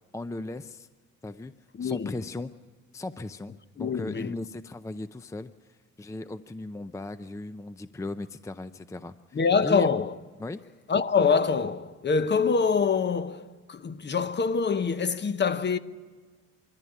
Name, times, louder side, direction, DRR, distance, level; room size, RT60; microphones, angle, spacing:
voice 1, 0.1-0.9 1.2-1.5 1.8-2.5 2.9-9.9 10.4-10.6, left 2 dB, 10° left, 0.5 m, -37 dB
voice 2, 1.8-2.2 3.8-4.3 9.3-10.2 10.9-15.8, left 5 dB, 35° left, 0.9 m, -25 dB
23.5 x 14.5 x 9.7 m
cardioid pair, 90°, 30 cm